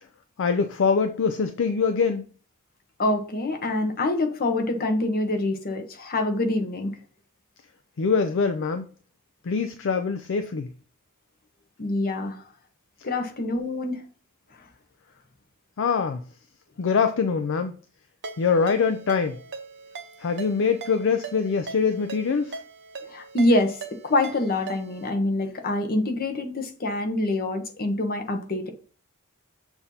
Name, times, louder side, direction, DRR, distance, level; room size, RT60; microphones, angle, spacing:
voice 1, 0.4-2.3 8.0-8.9 9.4-10.7 15.8-16.2 16.8-17.7 18.4-19.4 20.2-22.6, left 5 dB, 60° left, 0.5 m, -24 dB
voice 2, 3.0-6.9 11.8-12.4 13.0-14.0 23.1-23.8 24.0-28.7, left 2 dB, 45° left, 1.0 m, -25 dB
Ringtone, 18.2-25.1, right 4 dB, 55° right, 0.8 m, -40 dB
6.9 x 2.7 x 5.5 m
head